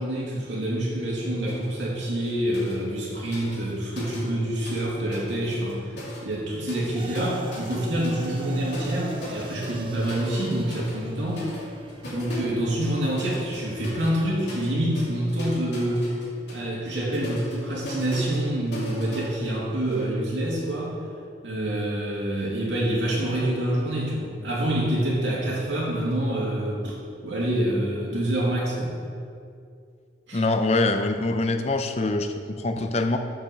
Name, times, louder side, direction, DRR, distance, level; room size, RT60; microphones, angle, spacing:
voice 1, 0.0-6.0 6.2-11.4 12.1-16.1 16.5-20.9 21.4-27.0 27.2-28.9 30.3-30.4, right 1 dB, 90° right, -5 dB, 2.5 m, -27 dB
sound 1, 1.5-1.7 2.0-4.9 5.1-20.1, left 1 dB, 70° left, 2.4 m, -39 dB
sound 2, 7.0-15.5, right 2 dB, 30° right, 0.5 m, -42 dB
voice 2, 30.3-33.2, left 2 dB, 35° left, 7 dB, 0.6 m, -24 dB
7.3 x 5.9 x 6.5 m, 2.3 s
head